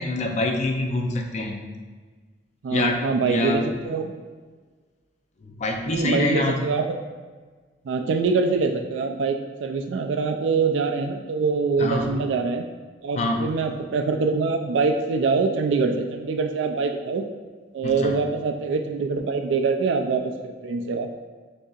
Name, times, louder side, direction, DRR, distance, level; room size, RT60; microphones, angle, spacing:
voice 1, 0.0-1.6 2.7-3.7 5.4-6.6 11.8-12.1 13.2-13.5 17.8-18.2, left 2 dB, 40° left, 3 dB, 0.5 m, -25 dB
voice 2, 2.6-4.1 5.8-6.8 7.9-12.6 13.0-17.2 17.7-21.1, right 4 dB, 90° right, 6 dB, 0.3 m, -24 dB
6.3 x 2.7 x 2.4 m, 1.4 s
head